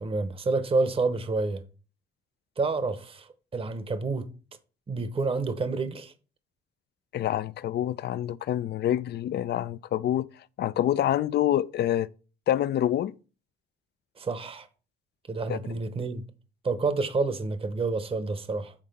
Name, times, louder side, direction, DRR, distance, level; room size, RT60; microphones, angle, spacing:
voice 1, 0.0-1.6 2.6-4.3 4.9-6.1 14.2-14.7 15.3-16.3 16.6-18.7, right 3 dB, 30° right, 0.8 m, -29 dB
voice 2, 7.1-10.3 10.6-12.1 12.5-13.1 15.5-15.6, left 11 dB, 60° left, 0.4 m, -26 dB
7.4 x 3.7 x 5.2 m
cardioid pair, 90°, 20 cm